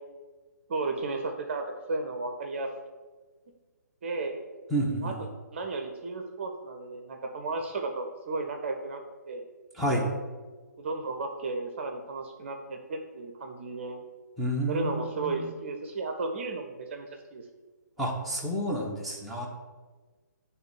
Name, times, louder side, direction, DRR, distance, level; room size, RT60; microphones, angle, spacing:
voice 1, 0.7-2.7 4.0-4.4 5.0-5.1 5.5-9.0 9.3-9.4 10.8-14.0 14.7-17.4, right 3 dB, 40° right, 4 dB, 0.7 m, -34 dB
voice 2, 4.7-5.1 9.8-10.0 14.4-15.5 18.0-19.5, right 1 dB, ahead, -6 dB, 0.9 m, -30 dB
9.1 x 3.3 x 4.6 m, 1.4 s
figure-of-eight pair, 135°, 10 cm